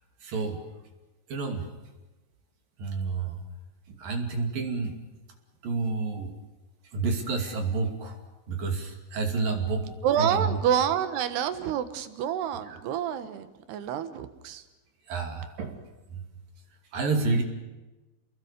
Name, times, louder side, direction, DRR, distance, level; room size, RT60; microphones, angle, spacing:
voice 1, 0.2-0.6 1.3-1.6 2.8-3.4 4.0-4.9 5.6-6.3 6.9-8.2 8.5-9.9 10.2-10.6 15.1-15.8 16.9-17.4, right 4 dB, 50° right, 4 dB, 4.0 m, -29 dB
voice 2, 9.8-14.6, right 9 dB, 70° right, 11 dB, 3.2 m, -28 dB
30.0 x 21.0 x 6.8 m, 1.1 s
omnidirectional pair, 5.5 m